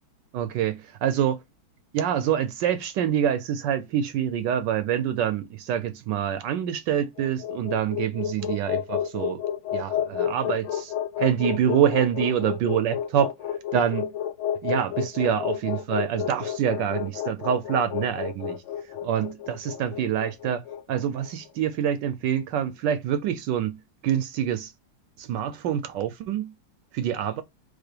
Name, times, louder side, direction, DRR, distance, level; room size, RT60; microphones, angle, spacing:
voice 1, 0.3-1.4 1.9-9.4 9.7-13.3 13.7-14.1 14.6-18.6 19.0-20.6 20.9-23.8 24.0-24.7 25.2-26.5 26.9-27.4, right 9 dB, 75° right, 1.1 m, -26 dB
sound 1, 7.0-21.3, left 9 dB, 80° left, 1.5 m, -30 dB
4.7 x 2.2 x 4.4 m
omnidirectional pair, 2.3 m